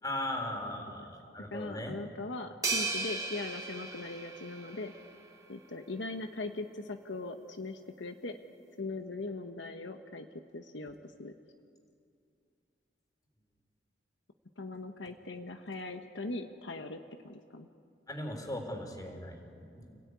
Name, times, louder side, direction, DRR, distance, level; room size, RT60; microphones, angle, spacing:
voice 1, 0.0-1.9 18.1-20.0, left 1 dB, 20° left, 3 dB, 3.6 m, -38 dB
voice 2, 1.4-4.9 5.5-8.4 8.8-10.3 10.5-11.3 14.6-17.7, left 2 dB, 80° left, 6 dB, 1.2 m, -40 dB
sound 1, 2.6-5.1, right 3 dB, 20° right, 2.5 m, -36 dB
30.0 x 17.0 x 9.5 m, 2.4 s
head